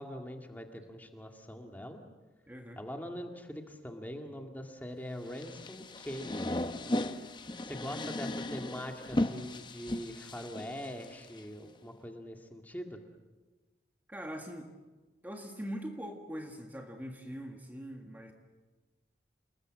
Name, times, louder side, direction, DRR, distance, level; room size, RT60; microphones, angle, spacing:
voice 1, 0.0-2.0 2.8-6.6 7.6-13.0, equal, 10° left, 3 dB, 2.0 m, -42 dB
voice 2, 2.5-2.8 7.7-8.0 14.1-14.7 15.2-18.3, equal, 10° right, 3 dB, 1.9 m, -42 dB
sound 1, 5.3-11.4, left 1 dB, 25° left, 0.9 m, -36 dB
29.0 x 20.5 x 7.6 m, 1.2 s
head